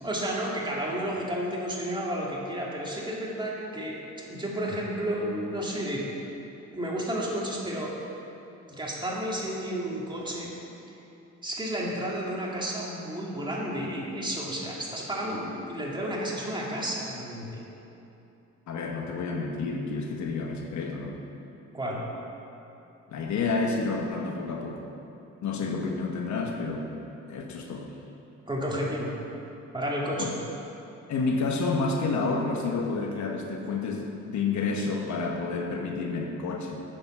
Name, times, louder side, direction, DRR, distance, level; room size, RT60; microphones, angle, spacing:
voice 1, 0.0-6.0 6.7-7.9 8.7-10.5 11.4-17.6 21.7-22.0 28.5-29.1 29.7-30.3, equal, 15° right, -4 dB, 2.2 m, -31 dB
voice 2, 18.7-21.2 23.1-24.8 25.4-26.9 27.3-27.9 30.2-30.3 31.1-36.8, left 4 dB, 70° left, 2 dB, 1.2 m, -29 dB
8.9 x 7.3 x 6.0 m, 2.8 s
cardioid pair, 90°, 30 cm